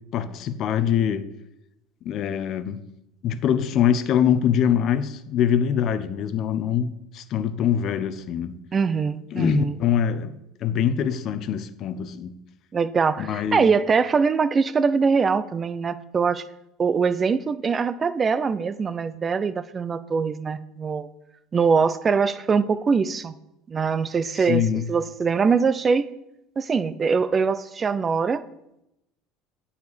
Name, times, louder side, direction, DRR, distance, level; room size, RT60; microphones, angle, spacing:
voice 1, 0.1-1.3 2.0-2.8 3.2-8.6 9.3-12.4 13.2-13.7 24.4-24.9, left 8 dB, 50° left, 0.6 m, -24 dB
voice 2, 8.7-9.8 12.7-16.4 16.8-21.1 21.5-23.4 23.7-26.1 26.6-28.4, right 5 dB, 30° right, 0.5 m, -23 dB
9.5 x 4.2 x 6.9 m
supercardioid pair, 100°, 0 cm